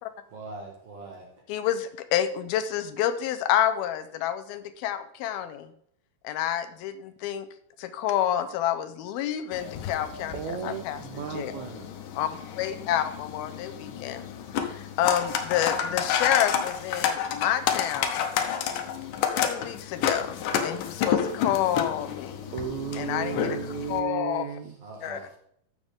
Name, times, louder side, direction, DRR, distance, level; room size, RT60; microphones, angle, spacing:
voice 1, 0.3-1.4 22.1-22.7 24.8-25.4, right 3 dB, 55° right, 1 dB, 2.0 m, -43 dB
voice 2, 1.5-5.7 6.2-7.5 7.8-10.3 10.6-11.0 11.3-11.5 12.2-12.3 12.6-14.2 14.7-18.2 19.4-22.4 23.0-23.6 23.9-24.5 25.0-25.2, left 11 dB, 85° left, 10 dB, 2.6 m, -28 dB
sound 1, 9.5-24.0, left 8 dB, 70° left, 2.1 m, -30 dB
voice 3, 10.3-11.9 22.5-24.8, right 8 dB, 90° right, 4 dB, 1.6 m, -34 dB
13.5 x 6.4 x 3.6 m, 0.68 s
omnidirectional pair, 4.3 m